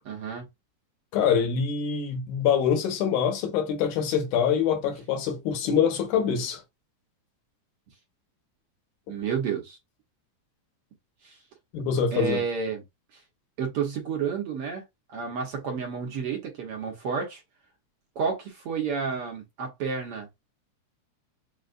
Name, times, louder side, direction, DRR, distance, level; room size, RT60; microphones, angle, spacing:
voice 1, 0.0-0.4 9.1-9.8 11.2-11.4 12.1-12.8 13.6-14.8 15.1-17.4 18.1-20.3, right 6 dB, 65° right, 1.5 m, -30 dB
voice 2, 1.1-6.6 11.7-12.4, left 7 dB, 75° left, 2.5 m, -25 dB
6.5 x 2.3 x 2.5 m
omnidirectional pair, 3.6 m